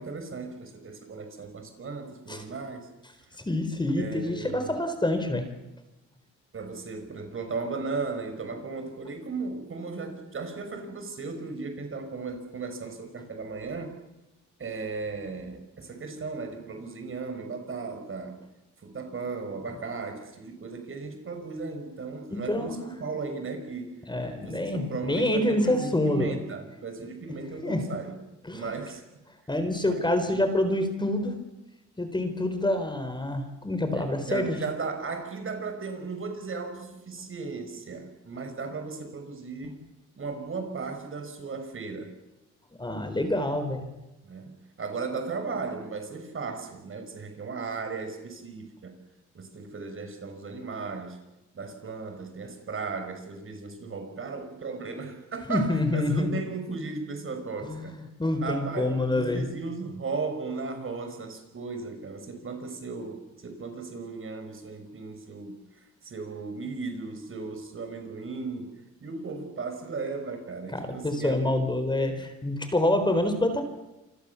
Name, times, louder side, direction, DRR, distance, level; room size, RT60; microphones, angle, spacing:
voice 1, 0.0-2.9 4.0-4.8 6.5-13.9 14.6-18.4 18.8-23.9 24.3-28.2 28.5-29.0 29.8-30.5 33.9-39.8 40.1-42.1 44.2-44.5 44.8-48.9 49.3-51.2 51.5-58.0 58.4-68.7 69.0-71.5, right 4 dB, 45° right, 7 dB, 5.9 m, -36 dB
voice 2, 3.4-5.4 22.3-22.7 24.1-26.3 27.6-27.8 28.4-28.7 29.5-31.4 32.0-34.6 42.8-43.9 55.5-56.3 57.6-59.4 70.7-73.6, left 1 dB, 15° left, 8 dB, 4.3 m, -27 dB
28.0 x 25.5 x 7.1 m, 1.0 s
cardioid pair, 90°, 30 cm